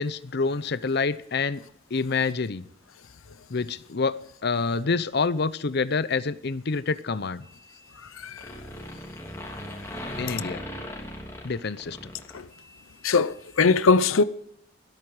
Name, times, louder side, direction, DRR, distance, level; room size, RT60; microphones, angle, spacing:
voice 1, 0.0-1.6 1.9-2.6 3.5-7.4 10.2-10.6 11.4-12.0, left 4 dB, 55° left, 0.6 m, -27 dB
sound 1, 7.4-8.1 8.4-12.8, left 1 dB, 15° left, 3.1 m, -38 dB
voice 2, 13.0-14.2, left 4 dB, 85° left, 0.7 m, -20 dB
16.5 x 13.5 x 4.9 m
head